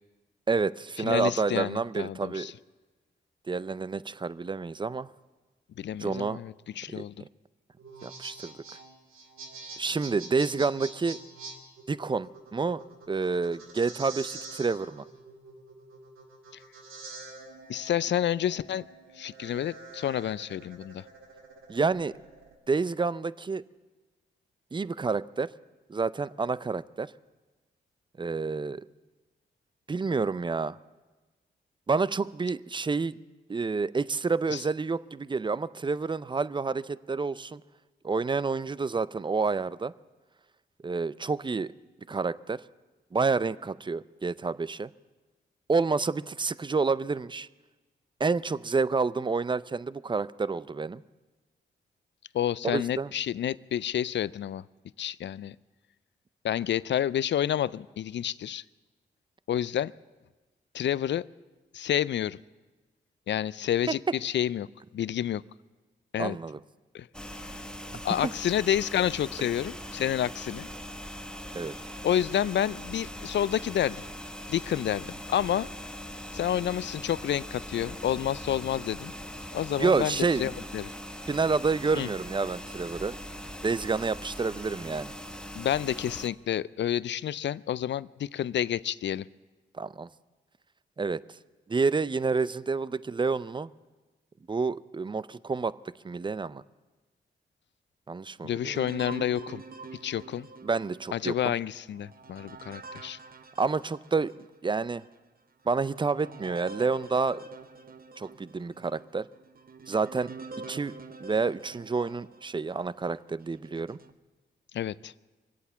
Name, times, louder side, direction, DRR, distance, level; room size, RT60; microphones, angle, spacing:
voice 1, 0.5-2.5 3.5-5.1 6.0-6.4 6.9-7.0 8.0-8.5 9.8-11.2 11.9-12.8 13.1-15.0 21.7-22.1 22.7-23.6 24.7-25.5 25.9-27.1 28.2-28.8 29.9-30.8 31.9-33.2 33.5-37.6 38.0-39.9 40.8-41.7 42.1-42.6 43.1-44.9 45.7-47.5 48.2-51.0 52.6-53.1 66.2-66.6 71.5-71.7 79.8-80.5 81.3-83.1 83.6-85.1 89.8-90.1 91.0-91.2 91.7-93.7 94.5-95.8 96.0-96.6 98.1-98.8 100.6-101.5 103.6-105.0 105.7-107.4 108.2-109.3 109.9-110.3 110.7-110.9 111.2-114.0, right 4 dB, 20° right, 18 dB, 0.5 m, -29 dB
voice 2, 1.0-2.5 5.8-7.1 17.7-18.9 19.2-21.0 34.5-34.6 52.3-54.6 55.0-55.6 56.4-58.6 59.5-59.9 60.7-61.3 61.7-62.4 63.3-64.7 64.9-65.4 66.1-66.4 66.9-67.1 67.3-67.5 68.0-70.7 72.0-74.0 74.5-75.7 76.3-79.1 79.5-80.9 82.0-82.1 85.5-89.3 98.4-99.6 100.0-100.5 101.1-103.2 114.7-115.1, left 10 dB, 60° left, 20 dB, 0.4 m, -29 dB
sound 1, 7.8-22.5, right 3 dB, 85° right, 1.9 m, -46 dB
sound 2, 67.1-86.3, equal, 5° left, 1.0 m, -41 dB
sound 3, 98.7-104.5 105.0-105.1 105.7-112.9 113.5-114.1, right 4 dB, 45° right, 0.9 m, -46 dB
23.5 x 8.5 x 6.9 m, 1.2 s
supercardioid pair, 45°, 21 cm